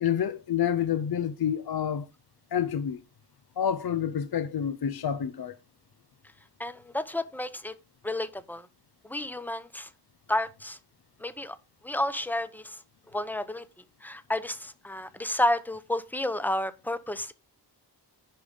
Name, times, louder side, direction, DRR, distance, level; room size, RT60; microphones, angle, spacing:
voice 1, 0.0-2.1 2.5-3.0 3.6-5.6, left 9 dB, 60° left, 0.6 m, -28 dB
voice 2, 6.6-7.7 8.0-8.7 9.0-9.9 10.3-10.8 11.2-11.6 11.8-12.8 13.1-13.6 14.0-17.3, left 1 dB, 5° left, 0.8 m, -31 dB
10.0 x 5.0 x 5.3 m
wide cardioid pair, 130°, 43 cm